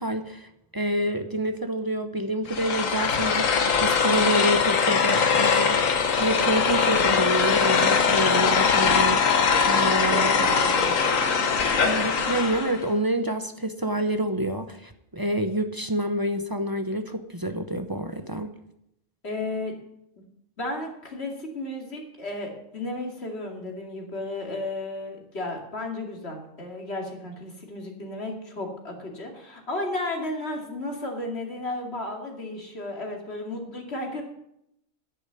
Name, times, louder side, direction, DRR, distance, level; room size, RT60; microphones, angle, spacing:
voice 1, 0.0-10.3 11.8-18.5, right 1 dB, 25° right, 7 dB, 0.6 m, -28 dB
sound 1, 2.5-12.8, left 5 dB, 90° left, 1.5 m, -22 dB
voice 2, 9.8-11.1 19.2-19.8 20.6-34.2, left 2 dB, 55° left, 1 dB, 2.7 m, -33 dB
11.0 x 6.7 x 9.1 m, 0.79 s
omnidirectional pair, 1.3 m